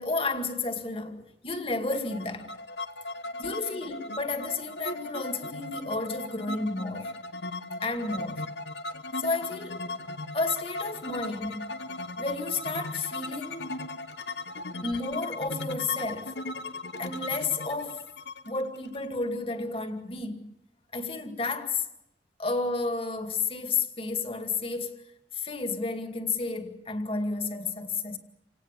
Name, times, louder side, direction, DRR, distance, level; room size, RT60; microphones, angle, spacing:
voice 1, 0.0-2.6 3.4-7.2 7.8-8.5 9.2-9.9 10.3-11.7 12.2-13.7 14.8-16.4 17.0-18.1 18.5-20.6 20.9-21.9 22.4-25.0 25.3-28.2, left 3 dB, 30° left, 2.2 m, -32 dB
sound 1, 1.9-19.6, left 2 dB, 75° left, 1.2 m, -37 dB
28.5 x 18.5 x 8.5 m
head